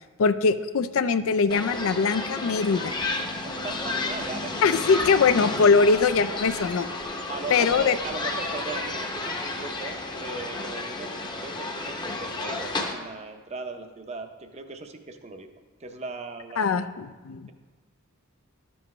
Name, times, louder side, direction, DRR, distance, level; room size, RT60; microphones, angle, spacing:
voice 1, 0.2-3.0 4.6-6.9 7.5-8.0 16.6-17.5, left 5 dB, 80° left, 12 dB, 0.4 m, -22 dB
sound 1, 1.5-12.9, left 2 dB, 20° left, 0.7 m, -32 dB
voice 2, 3.4-4.9 5.2-5.3 7.3-15.5 15.8-16.9, right 3 dB, 30° right, 7 dB, 0.6 m, -38 dB
sound 2, 3.7-5.3 5.7-8.1 8.7-8.8, left 3 dB, 55° left, 1.3 m, -47 dB
11.5 x 7.1 x 3.1 m, 1.3 s
head